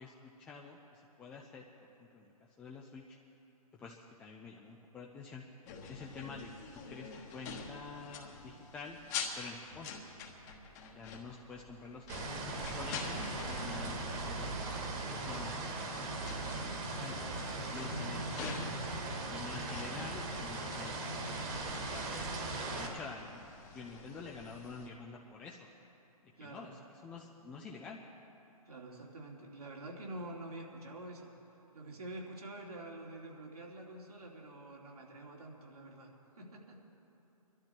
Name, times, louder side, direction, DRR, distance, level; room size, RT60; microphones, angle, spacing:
voice 1, 0.0-3.2 3.7-5.4 5.9-6.5 6.9-9.0 9.4-9.9 10.9-13.3 13.6-16.1 16.5-17.2 17.7-18.8 19.3-22.2 22.6-23.4 23.7-25.7 26.4-28.0, left 4 dB, 5° left, -2 dB, 0.4 m, -48 dB
sound 1, 5.7-24.9, left 5 dB, 30° left, 1.4 m, -47 dB
sound 2, 12.1-22.9, right 2 dB, 25° right, 1.7 m, -39 dB
voice 2, 17.7-18.7 26.4-26.7 28.6-31.3 31.7-36.8, right 1 dB, 80° right, -1 dB, 3.1 m, -47 dB
21.5 x 12.5 x 4.4 m, 3.0 s
hypercardioid pair, 150°, 19 cm